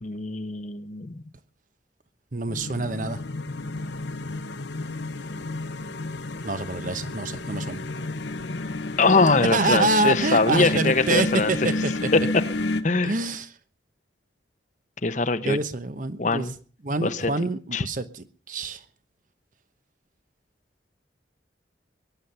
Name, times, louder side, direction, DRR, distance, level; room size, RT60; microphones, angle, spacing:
voice 1, 0.0-1.2 9.0-11.7 12.1-12.2 12.8-13.2 15.0-15.6 16.2-16.5 17.0-17.3 17.7-17.9, left 3 dB, 40° left, 0.9 m, -22 dB
voice 2, 2.3-3.2 6.4-7.8 9.5-11.6 11.8-11.9 13.0-13.5 15.5-16.4 16.8-18.8, right 2 dB, 45° right, 1.0 m, -26 dB
sound 1, 2.5-12.8, left 2 dB, 70° left, 1.0 m, -31 dB
22.0 x 9.5 x 5.7 m
head